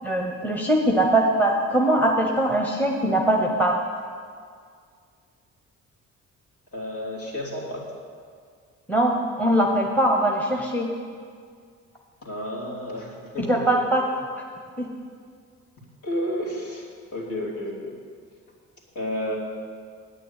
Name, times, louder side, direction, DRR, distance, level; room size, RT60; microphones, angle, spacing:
voice 1, 0.0-3.7 8.9-10.9 13.4-14.0 14.8-14.9, right 1 dB, 5° left, 0 dB, 1.1 m, -21 dB
voice 2, 6.7-7.9 12.2-13.6 16.0-16.8 17.1-17.9 18.9-19.4, equal, 50° left, -4 dB, 3.1 m, -31 dB
9.0 x 6.8 x 8.4 m, 2.1 s
cardioid pair, 90°, 30 cm